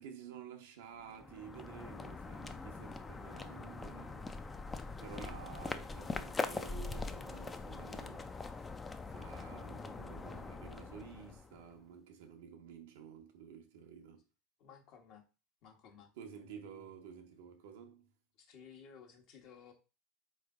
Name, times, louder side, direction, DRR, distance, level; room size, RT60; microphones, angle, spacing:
voice 1, 0.0-4.4 5.0-8.7 9.1-14.2 16.2-18.1, right 7 dB, 75° right, 0.8 m, -52 dB
sound 1, 1.0-11.7, left 3 dB, 20° left, 0.4 m, -43 dB
voice 2, 14.6-15.2 15.6-16.1 18.3-19.7, left 7 dB, 55° left, 1.2 m, -56 dB
3.8 x 3.2 x 3.5 m
hypercardioid pair, 95°, 0 cm